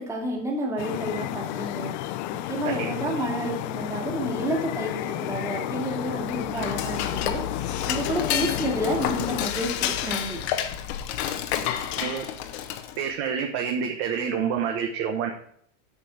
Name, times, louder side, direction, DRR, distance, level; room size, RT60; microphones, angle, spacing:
voice 1, 0.0-1.9 2.5-10.4, right 1 dB, 10° right, -1 dB, 2.1 m, -30 dB
sound 1, 0.8-9.5, left 14 dB, 35° left, 0.4 m, -31 dB
Dishes pots and pans / Cutlery silverware, 6.2-13.1, left 10 dB, 55° left, 1.2 m, -30 dB
voice 2, 12.0-12.3 13.0-15.3, right 7 dB, 35° right, 4 dB, 1.0 m, -28 dB
8.4 x 5.4 x 7.8 m, 0.66 s
supercardioid pair, 160°, 39 cm